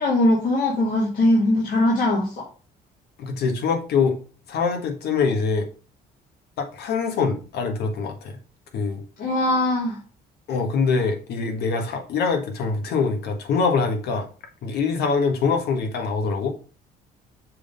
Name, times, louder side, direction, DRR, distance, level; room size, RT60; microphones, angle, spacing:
voice 1, 0.0-2.5 9.2-10.0, left 1 dB, 55° left, 2.1 m, -21 dB
voice 2, 3.2-4.2 4.5-5.7 6.6-8.4 8.7-9.0 10.5-14.3 14.6-16.5, left 5 dB, 75° left, 1.6 m, -24 dB
6.6 x 3.7 x 5.3 m
cardioid pair, 110°, 17 cm